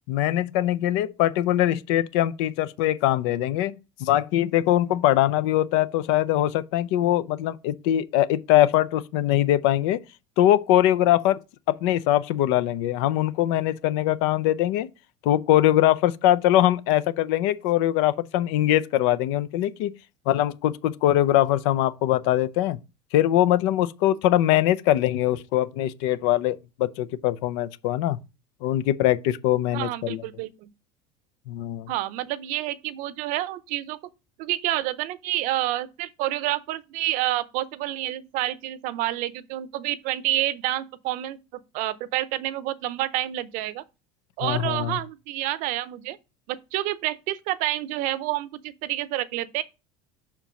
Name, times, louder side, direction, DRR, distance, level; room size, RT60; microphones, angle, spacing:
voice 1, 0.1-10.0 10.4-11.4 11.7-14.9 15.2-19.9 20.3-22.8 23.1-28.2 28.6-30.2 31.5-31.9 44.4-45.0, left 13 dB, 75° left, 0.5 m, -22 dB
voice 2, 29.7-30.7 31.9-34.0 34.4-43.8 44.4-46.2 46.5-49.6, right 15 dB, 65° right, 0.6 m, -28 dB
5.8 x 4.5 x 5.0 m
supercardioid pair, 100°, 15 cm